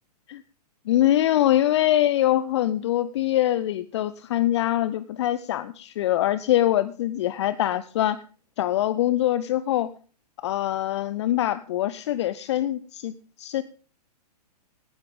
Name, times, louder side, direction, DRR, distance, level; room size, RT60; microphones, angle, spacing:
voice 1, 0.9-8.2 8.6-9.9 10.4-13.6, left 13 dB, 45° left, 16 dB, 0.6 m, -23 dB
17.5 x 11.5 x 3.6 m, 0.39 s
figure-of-eight pair, 110°, 21 cm